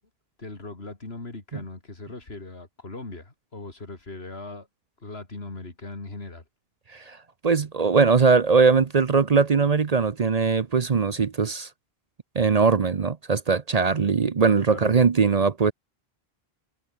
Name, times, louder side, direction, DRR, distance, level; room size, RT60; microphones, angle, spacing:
voice 1, 0.4-4.7 5.0-6.4 14.7-14.9, left 2 dB, 80° left, 3.6 m, -39 dB
voice 2, 7.4-11.7 12.3-15.7, right 5 dB, 45° right, 0.8 m, -21 dB
omnidirectional pair, 1.0 m